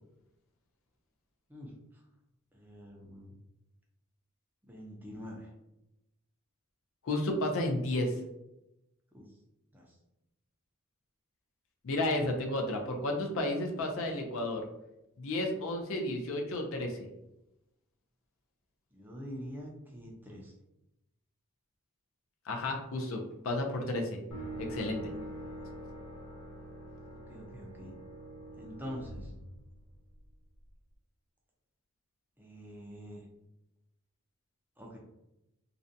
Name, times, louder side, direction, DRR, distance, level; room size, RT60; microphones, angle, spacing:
voice 1, 2.5-3.3 4.7-5.5 9.1-9.2 9.7-9.8 18.9-20.5 27.3-27.9 28.6-29.3 32.4-33.2 34.8-35.0, equal, 10° right, -2 dB, 0.4 m, -45 dB
voice 2, 7.0-8.2 11.8-14.7 15.2-17.0 22.5-24.2 24.6-25.1, left 1 dB, 60° left, 3 dB, 0.4 m, -32 dB
sound 1, 24.3-30.2, right 1 dB, 85° left, 0.7 m, -44 dB
2.5 x 2.1 x 2.5 m, 0.90 s
head